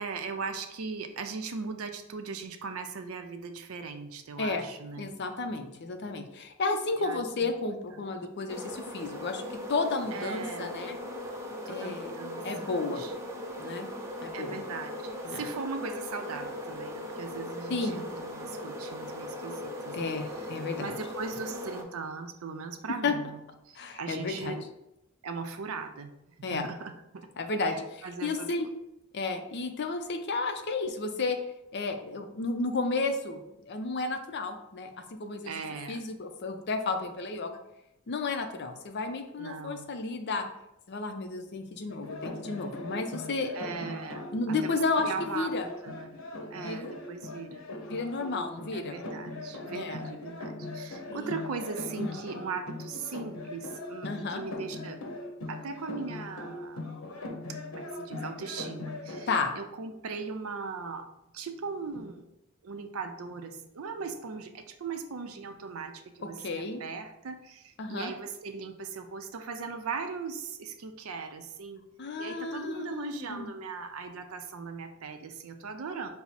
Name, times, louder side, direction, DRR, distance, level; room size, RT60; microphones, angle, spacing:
voice 1, 0.0-5.1 7.0-7.5 10.1-10.8 11.7-13.1 14.3-20.1 20.8-23.4 23.6-24.7 25.2-26.1 26.5-27.3 27.7-27.8 28.0-28.5 35.5-36.0 39.4-39.9 43.5-44.8 45.0-45.5 45.8-46.2 46.5-47.7 48.7-55.0 55.5-57.0 57.5-59.3 59.6-62.2 62.6-71.8 72.2-76.1, right 4 dB, 85° right, 7 dB, 0.5 m, -39 dB
voice 2, 5.0-11.0 11.7-12.2 12.4-13.1 13.6-13.9 14.2-14.6 15.2-15.5 17.7-18.0 19.9-21.0 23.0-23.2 23.8-24.6 26.4-26.7 27.4-28.7 29.1-31.4 31.7-35.5 35.9-37.6 38.1-40.4 40.9-43.5 44.3-45.7 46.6-46.9 47.9-49.0 49.7-50.0 51.1-51.3 52.0-52.2 54.0-54.4 59.3-59.5 66.4-66.8 67.8-68.1 72.0-73.5, left 3 dB, 55° left, 6 dB, 0.5 m, -32 dB
sound 1, 8.5-21.8, left 1 dB, 15° right, 0.6 m, -39 dB
sound 2, 41.9-59.2, left 2 dB, 75° left, 0.8 m, -40 dB
5.8 x 2.0 x 4.0 m, 0.86 s
head